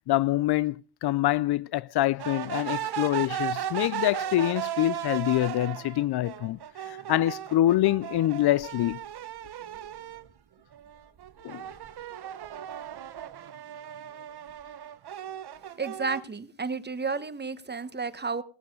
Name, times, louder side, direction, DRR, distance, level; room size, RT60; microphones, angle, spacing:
voice 1, 0.1-6.6 6.9-9.0 11.4-11.6, left 14 dB, 60° left, 0.5 m, -25 dB
sound 1, 2.2-10.3 10.7-16.2, right 10 dB, 60° right, 1.1 m, -36 dB
voice 2, 15.8-18.4, right 4 dB, 25° right, 1.1 m, -32 dB
18.5 x 7.4 x 5.4 m
cardioid pair, 70°, 45 cm